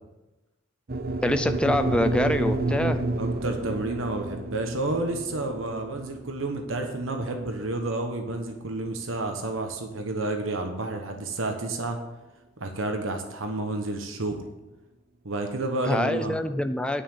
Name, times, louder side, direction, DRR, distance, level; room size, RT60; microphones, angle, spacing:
sound 1, 0.9-9.1, right 2 dB, 50° right, 0.7 m, -30 dB
voice 1, 1.2-3.0 15.8-17.0, left 1 dB, 5° left, 8 dB, 0.5 m, -25 dB
voice 2, 3.2-12.0 12.6-14.4 15.2-16.4, right 2 dB, 80° right, 4 dB, 1.1 m, -30 dB
10.0 x 5.7 x 7.1 m, 1.0 s
head